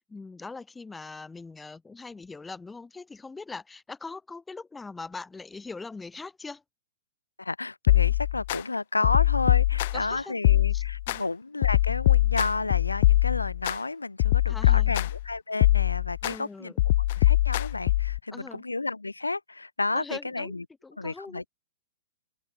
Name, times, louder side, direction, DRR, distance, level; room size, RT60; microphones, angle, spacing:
voice 1, 0.0-6.6 9.9-10.4 10.7-11.2 14.5-14.9 16.2-16.8 18.3-18.6 19.9-20.5 20.8-21.4, left 3 dB, 10° left, 1.9 m, -41 dB
voice 2, 7.4-16.7 17.2-20.6 21.0-21.5, left 3 dB, 85° left, 1.8 m, -31 dB
sound 1, 7.9-8.6 9.0-10.1 10.4-11.2 11.6-13.8 14.2-15.3 15.6-16.4 16.8-18.2, left 15 dB, 50° left, 0.4 m, -23 dB
open air
figure-of-eight pair, 105°, 0 cm